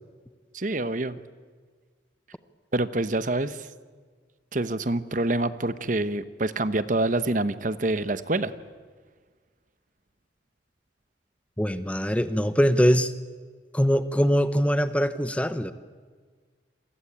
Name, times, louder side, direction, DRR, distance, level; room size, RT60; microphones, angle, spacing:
voice 1, 0.5-1.2 2.7-3.7 4.5-8.5, right 2 dB, 45° right, 13 dB, 1.0 m, -26 dB
voice 2, 11.6-13.1 13.7-15.7, equal, 5° left, 12 dB, 0.9 m, -22 dB
28.5 x 23.0 x 8.7 m, 1.5 s
head